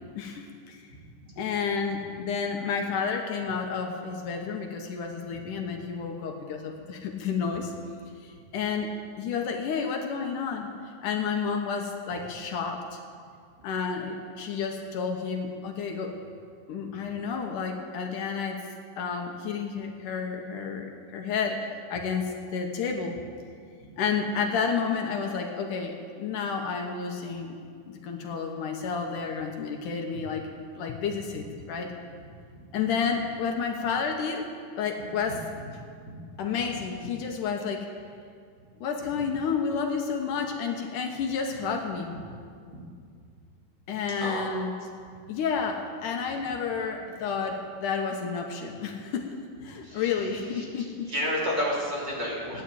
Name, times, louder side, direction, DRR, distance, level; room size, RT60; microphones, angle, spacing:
voice 1, 0.2-0.9 1.4-7.7 8.2-10.7 11.0-13.0 13.6-16.2 16.7-18.7 19.0-23.2 24.0-30.5 30.8-31.9 32.7-34.5 34.8-35.4 36.4-37.9 38.8-42.2 43.9-44.7 45.3-49.4 49.6-51.1, left 5 dB, 70° left, 3 dB, 2.6 m, -31 dB
voice 2, 44.2-44.7 49.8-50.6 51.0-52.6, equal, 30° right, -6 dB, 4.0 m, -32 dB
16.5 x 10.5 x 8.5 m, 2.2 s
omnidirectional pair, 3.9 m